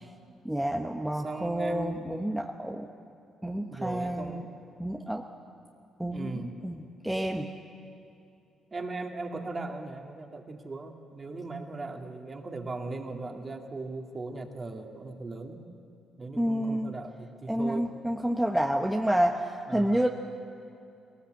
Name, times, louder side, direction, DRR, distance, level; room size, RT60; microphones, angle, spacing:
voice 1, 0.4-2.9 3.4-4.4 4.8-5.2 6.0-7.5 16.4-16.9 17.5-20.1, right 1 dB, 5° right, 1 dB, 1.1 m, -29 dB
voice 2, 1.2-2.2 3.7-4.5 6.1-6.7 8.7-15.6 16.2-17.9 19.7-20.0, right 3 dB, 30° right, 2 dB, 2.2 m, -38 dB
20.0 x 19.0 x 7.8 m, 2.6 s
cardioid pair, 90°, 0 cm